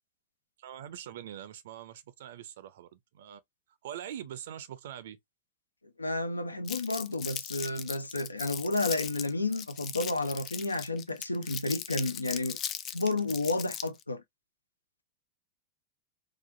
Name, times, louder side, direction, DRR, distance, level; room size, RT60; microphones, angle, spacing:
voice 1, 0.6-3.4 3.8-5.2, right 10 dB, 55° right, 0.5 m, -43 dB
voice 2, 6.0-12.6 12.9-14.2, left 2 dB, 80° left, 0.5 m, -31 dB
Crumpling crinkling, 6.7-14.0, left 9 dB, 30° left, 0.4 m, -39 dB
4.2 x 2.5 x 2.5 m
figure-of-eight pair, 90°, 0 cm